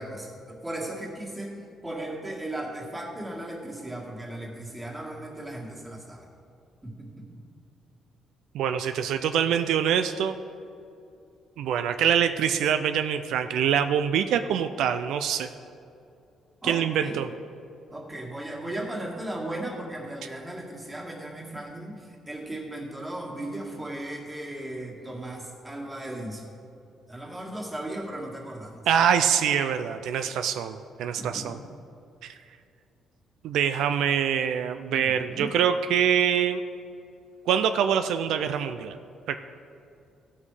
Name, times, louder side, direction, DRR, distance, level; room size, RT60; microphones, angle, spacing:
voice 1, 0.0-6.3 6.8-7.3 16.6-17.2 17.9-26.5 27.1-28.9 31.2-31.6 34.9-35.6, right 1 dB, 15° right, -2 dB, 2.1 m, -36 dB
voice 2, 8.5-10.3 11.6-15.5 16.7-17.3 28.9-31.6 32.2-32.3 33.4-36.6 37.5-39.0 39.3-39.4, right 8 dB, 80° right, 9 dB, 0.4 m, -24 dB
15.5 x 5.4 x 4.9 m, 2.6 s
cardioid pair, 110°, 0 cm